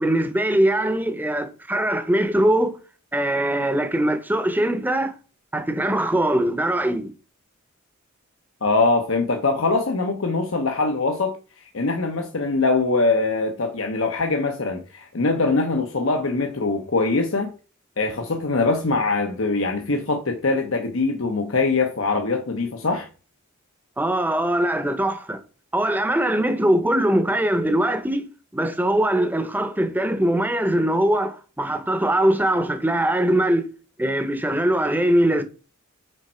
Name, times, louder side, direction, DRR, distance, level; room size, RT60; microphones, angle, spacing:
voice 1, 0.0-2.7 3.1-5.1 5.5-7.1 24.0-25.4 25.7-28.3 28.5-33.6 34.0-35.4, right 1 dB, 10° right, 0.8 m, -21 dB
voice 2, 8.6-17.5 18.0-23.1, left 3 dB, 70° left, 1.0 m, -23 dB
6.6 x 4.5 x 4.4 m
head